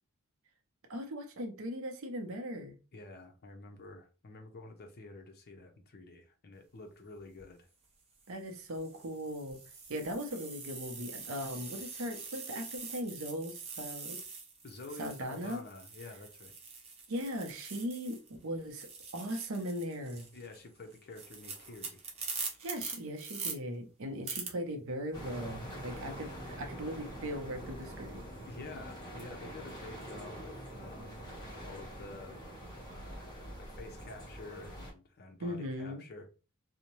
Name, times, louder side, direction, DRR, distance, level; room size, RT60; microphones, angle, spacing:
voice 1, 0.9-2.8 8.3-9.6 9.9-14.2 15.0-15.6 17.1-20.3 22.6-26.3 26.6-28.3 35.4-36.0, equal, 65° right, 0.6 m, -39 dB
voice 2, 2.9-7.7 14.6-16.5 20.3-22.0 26.2-26.4 28.5-31.2 31.6-32.4 32.9-36.3, left 3 dB, 45° left, 0.6 m, -49 dB
sound 1, 7.2-7.4 8.2-18.3 18.6-23.5 24.3-24.5, right 4 dB, 30° right, 0.6 m, -44 dB
sound 2, 25.1-34.9, right 1 dB, 20° left, 1.2 m, -45 dB
2.6 x 2.1 x 3.0 m
head